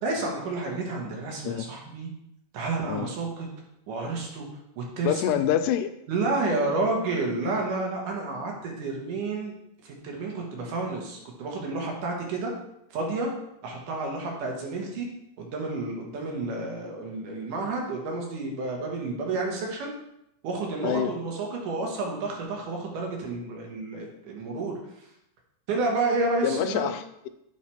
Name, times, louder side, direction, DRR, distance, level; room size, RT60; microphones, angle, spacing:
voice 1, 0.0-2.1 2.5-3.5 3.9-4.5 4.8-5.4 6.1-9.5 9.8-12.5 12.9-13.3 13.6-15.1 15.4-19.9 20.4-24.8 25.7-26.9, right 3 dB, 90° right, 0 dB, 3.1 m, -30 dB
voice 2, 5.0-5.9 20.8-21.1 26.4-27.3, left 10 dB, 90° left, 10 dB, 2.2 m, -26 dB
8.2 x 4.7 x 5.7 m, 0.80 s
omnidirectional pair, 3.6 m